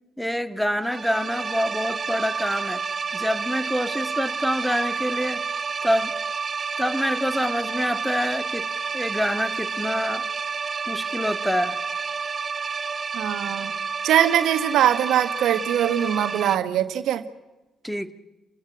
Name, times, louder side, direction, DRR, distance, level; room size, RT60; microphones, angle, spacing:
voice 1, 0.2-2.8 3.1-5.4 5.8-6.1 6.8-8.6 8.9-10.2 10.9-11.8 17.8-18.1, equal, 5° left, 9 dB, 1.9 m, -26 dB
sound 1, 0.8-16.6, right 5 dB, 40° right, 0.7 m, -30 dB
voice 2, 13.1-13.7 14.0-17.2, right 10 dB, 70° right, 10 dB, 1.4 m, -22 dB
28.5 x 15.5 x 8.8 m, 1.1 s
hypercardioid pair, 50°, 0 cm